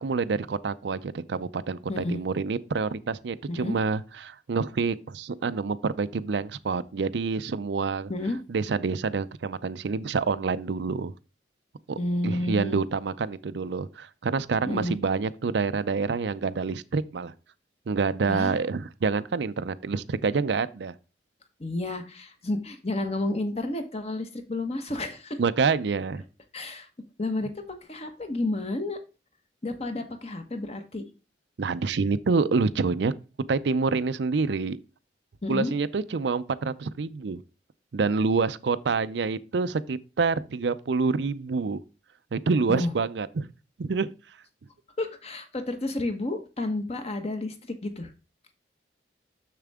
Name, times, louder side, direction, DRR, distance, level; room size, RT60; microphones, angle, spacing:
voice 1, 0.0-8.1 8.5-11.1 11.9-12.0 12.2-17.3 17.9-20.9 25.4-26.2 31.6-33.1 33.5-34.8 35.5-37.4 37.9-41.8 42.3-43.5 43.8-44.1, right 4 dB, 70° right, 0.5 m, -27 dB
voice 2, 1.9-2.2 3.5-3.7 8.1-8.4 12.0-12.8 14.6-15.0 18.3-18.6 21.6-25.4 26.5-26.9 27.2-27.5 27.9-29.0 29.6-31.0 35.4-35.7 42.7-42.9 45.0-48.1, left 2 dB, 35° left, 1.2 m, -31 dB
6.9 x 6.6 x 3.6 m
head